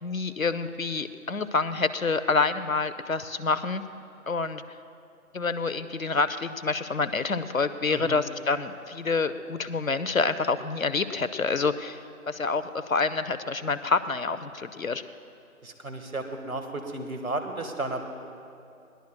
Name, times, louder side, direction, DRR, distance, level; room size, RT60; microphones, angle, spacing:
voice 1, 0.0-3.8 4.3-4.8 5.3-15.0, left 4 dB, 65° left, 12 dB, 0.7 m, -27 dB
voice 2, 7.9-8.2 15.6-18.0, right 2 dB, 70° right, 6 dB, 1.7 m, -33 dB
21.5 x 18.0 x 2.3 m, 2.6 s
figure-of-eight pair, 175°, 44 cm